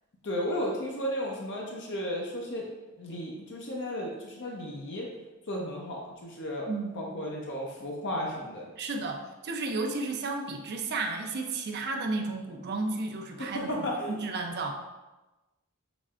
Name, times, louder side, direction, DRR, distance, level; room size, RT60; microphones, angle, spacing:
voice 1, 0.2-2.7 3.0-5.1 5.5-6.7 6.9-8.7 13.4-14.2, equal, 55° left, -1 dB, 0.7 m, -34 dB
voice 2, 6.7-7.0 8.8-14.7, right 3 dB, 50° right, 3 dB, 0.5 m, -33 dB
6.0 x 3.2 x 2.4 m, 1.1 s
head